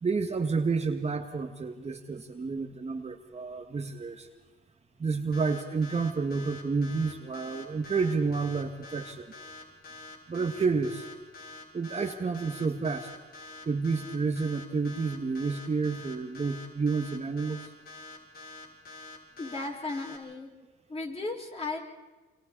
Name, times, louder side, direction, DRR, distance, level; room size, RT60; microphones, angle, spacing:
voice 1, 0.0-4.3 5.0-9.3 10.3-11.1 11.7-13.1 13.7-17.6, right 4 dB, 35° right, 5 dB, 1.9 m, -30 dB
sound 1, 5.3-20.2, left 3 dB, 50° left, 5.7 m, -46 dB
voice 2, 19.4-20.5 20.9-21.8, left 3 dB, 30° left, 1 dB, 5.2 m, -35 dB
29.5 x 26.0 x 4.2 m, 1.2 s
cardioid pair, 90°, 20 cm